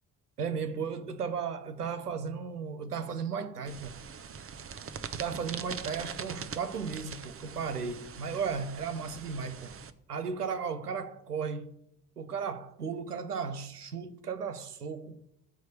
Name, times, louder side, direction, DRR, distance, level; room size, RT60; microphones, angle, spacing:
voice 1, 0.4-4.0 5.1-9.7 10.1-11.8 12.2-15.2, right 6 dB, 90° right, 0.7 m, -35 dB
sound 1, 3.6-9.9, right 6 dB, 30° right, 0.9 m, -42 dB
13.5 x 4.7 x 8.5 m
figure-of-eight pair, 50°, 45 cm